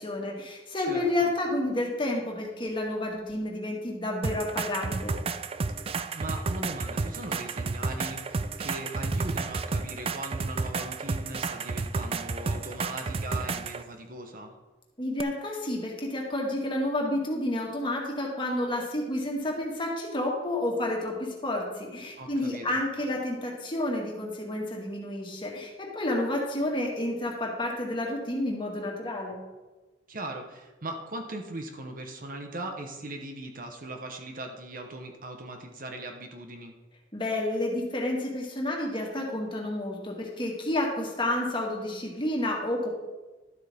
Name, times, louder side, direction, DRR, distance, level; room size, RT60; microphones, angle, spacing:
voice 1, 0.0-5.1 15.0-29.4 37.1-42.9, left 1 dB, 30° left, -1 dB, 1.9 m, -30 dB
voice 2, 0.9-1.3 6.1-14.5 22.2-22.8 30.1-36.7, right 2 dB, 55° right, 4 dB, 1.1 m, -39 dB
sound 1, 4.2-13.8 15.2-15.3, right 4 dB, 35° right, 0.4 m, -31 dB
12.0 x 8.1 x 3.6 m, 1.2 s
head